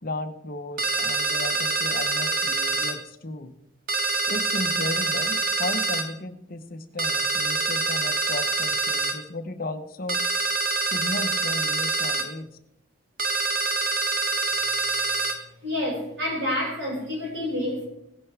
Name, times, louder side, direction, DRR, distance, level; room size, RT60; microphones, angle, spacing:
voice 1, 0.0-3.5 4.3-10.2 10.8-12.6, left 2 dB, 45° left, 8 dB, 0.9 m, -35 dB
sound 1, 0.8-3.0 3.9-6.1 7.0-9.2 10.1-12.3 13.2-15.4, right 3 dB, 45° right, 1.1 m, -25 dB
voice 2, 15.6-17.9, left 1 dB, 65° right, -3 dB, 5.6 m, -28 dB
16.5 x 10.5 x 3.4 m, 0.77 s
head